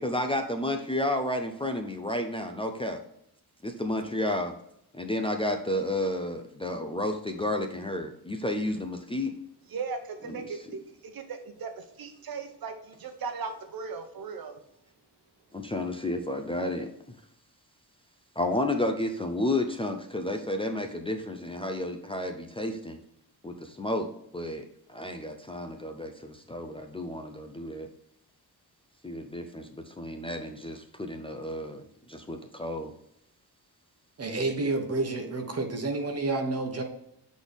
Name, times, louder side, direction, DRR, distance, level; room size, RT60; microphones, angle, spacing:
voice 1, 0.0-3.0 3.6-4.5 4.9-9.3 10.3-10.4 15.5-16.9 18.4-23.0 23.4-24.1 24.3-27.9 29.0-32.9, left 1 dB, 15° left, 4 dB, 0.5 m, -31 dB
voice 2, 9.7-14.6, right 5 dB, 60° right, 7 dB, 1.0 m, -38 dB
voice 3, 34.2-36.8, right 3 dB, 40° right, 4 dB, 1.2 m, -29 dB
7.7 x 4.1 x 3.5 m, 0.76 s
wide cardioid pair, 140°, 39 cm